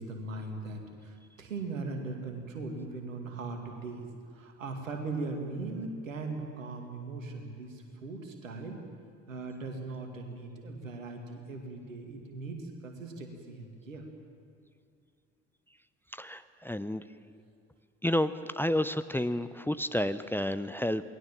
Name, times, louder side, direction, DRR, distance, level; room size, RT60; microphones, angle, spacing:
voice 1, 0.0-4.0 4.3-8.8 9.3-14.0, right 3 dB, 80° right, 4 dB, 2.4 m, -39 dB
voice 2, 16.1-17.0 18.0-21.0, left 1 dB, 5° left, 14 dB, 0.7 m, -30 dB
28.5 x 19.5 x 7.5 m, 2.4 s
figure-of-eight pair, 50°, 39 cm